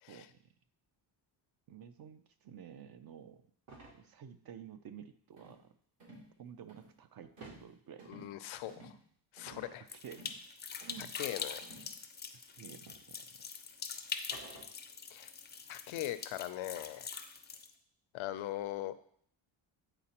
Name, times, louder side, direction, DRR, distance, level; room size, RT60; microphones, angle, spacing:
voice 1, 0.1-0.4 1.7-3.5 3.9-5.7 6.4-8.2 8.6-8.8 9.9-10.3 10.8-11.1 12.5-13.3, right 8 dB, 50° right, 10 dB, 0.5 m, -52 dB
sound 1, 3.7-4.0 7.2-7.7 8.5-8.7 9.5-9.8 12.1-12.2 12.9-13.0 14.3-15.0, right 2 dB, 90° right, 1.7 m, -52 dB
sound 2, 5.4-5.6 6.0-6.3 6.7-6.9 7.4-7.7 8.0-8.3 8.7-9.0 9.4-9.7 10.1-10.4 10.8-11.1 11.6-11.9, right 1 dB, 65° right, 2.8 m, -55 dB
voice 2, 8.1-8.9 9.3-9.8 11.1-11.6 15.1-15.3 15.7-17.1 18.1-18.9, left 14 dB, 80° left, 12 dB, 0.6 m, -40 dB
sound 3, 9.9-17.7, left 6 dB, 25° left, 0.4 m, -44 dB
8.6 x 4.0 x 2.9 m, 0.62 s
cardioid pair, 110°, 48 cm